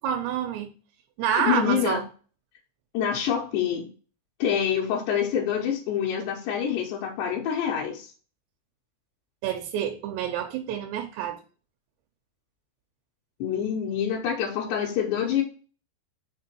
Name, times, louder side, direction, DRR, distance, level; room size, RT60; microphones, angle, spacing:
voice 1, 0.0-0.7 1.2-2.0 9.4-11.4, right 9 dB, 85° right, 2.8 m, -28 dB
voice 2, 1.3-2.0 2.9-3.9 4.4-8.1 13.4-15.4, left 8 dB, 80° left, 3.2 m, -26 dB
6.9 x 3.7 x 4.5 m
omnidirectional pair, 5.1 m